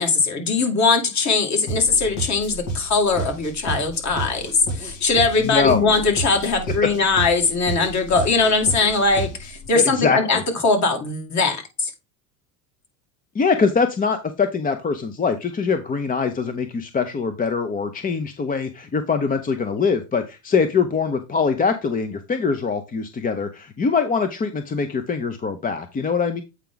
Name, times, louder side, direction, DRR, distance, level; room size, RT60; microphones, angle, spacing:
voice 1, 0.0-11.9, left 4 dB, 40° left, 2.4 m, -20 dB
sound 1, 1.7-9.7, right 1 dB, 70° left, 2.9 m, -32 dB
voice 2, 5.4-5.9 6.8-6.9 9.7-10.4 13.3-26.4, left 5 dB, 20° left, 0.7 m, -23 dB
8.3 x 4.7 x 3.9 m
supercardioid pair, 110°, 45 cm